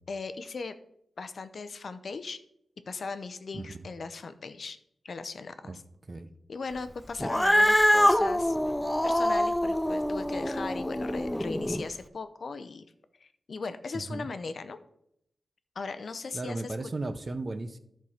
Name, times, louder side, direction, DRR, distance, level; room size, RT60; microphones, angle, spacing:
voice 1, 0.1-0.8 1.2-2.4 2.9-4.8 5.0-5.8 6.5-8.6 9.0-12.8 13.2-14.8 15.8-16.7, left 4 dB, 60° left, 11 dB, 0.6 m, -38 dB
voice 2, 3.5-3.8 5.6-5.8 6.1-6.3 13.9-14.3 16.3-17.8, right 2 dB, 35° right, 10 dB, 0.7 m, -35 dB
Cat, 7.2-11.8, equal, 5° left, 0.4 m, -25 dB
11.0 x 4.6 x 5.7 m, 0.76 s
wide cardioid pair, 100°, 0 cm